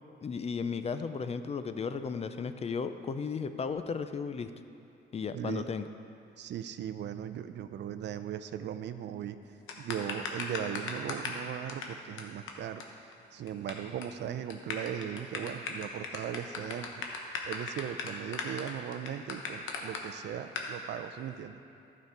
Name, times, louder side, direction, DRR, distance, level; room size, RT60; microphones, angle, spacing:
voice 1, 0.2-4.5 5.1-5.9, left 5 dB, 30° left, 10 dB, 0.4 m, -35 dB
voice 2, 5.3-5.7 6.4-9.4 9.8-12.8 13.3-17.0 17.5-21.6, right 10 dB, 60° right, 11 dB, 0.4 m, -38 dB
sound 1, 9.7-11.4 11.7-11.8 12.2-12.3 12.5-12.6 12.8-12.9 13.1-13.7 14.0-14.2 14.5-20.0 20.5-20.7, left 5 dB, 80° left, 1.0 m, -36 dB
11.5 x 5.2 x 4.7 m, 2.7 s
cardioid pair, 90°, 20 cm